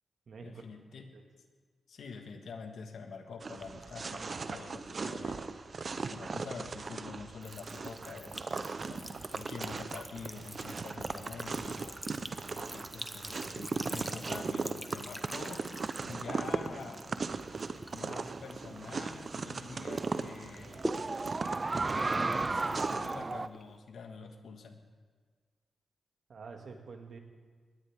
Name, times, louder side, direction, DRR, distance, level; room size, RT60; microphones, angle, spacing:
voice 1, 0.4-1.1 1.9-5.4 6.0-12.0 12.5-17.4 17.9-20.9 21.9-24.8, left 5 dB, 80° left, 5 dB, 1.7 m, -46 dB
sound 1, 3.4-23.1, right 4 dB, 55° right, 0.9 m, -38 dB
Sink (filling or washing) / Trickle dribble, 7.4-19.5 19.9-23.8, right 1 dB, 5° right, 1.1 m, -46 dB
sound 2, 16.3-23.5, right 3 dB, 35° right, 0.4 m, -35 dB
voice 2, 26.3-27.2, right 5 dB, 70° right, 3 dB, 2.1 m, -47 dB
21.0 x 16.5 x 3.7 m, 1.5 s
cardioid pair, 60°, 0 cm